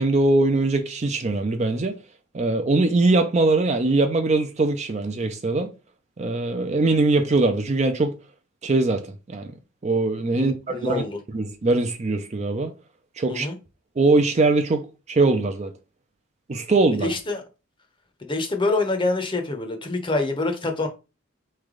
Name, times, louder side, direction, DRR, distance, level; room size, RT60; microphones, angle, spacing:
voice 1, 0.0-2.0 2.3-5.7 6.2-8.1 8.6-9.5 9.8-11.0 11.3-12.7 13.2-13.5 14.0-15.7 16.5-17.1, right 2 dB, 30° right, 0.4 m, -21 dB
voice 2, 10.4-11.2 13.3-13.6 17.0-17.4 18.2-20.9, left 2 dB, 20° left, 0.7 m, -26 dB
4.3 x 3.3 x 3.7 m
head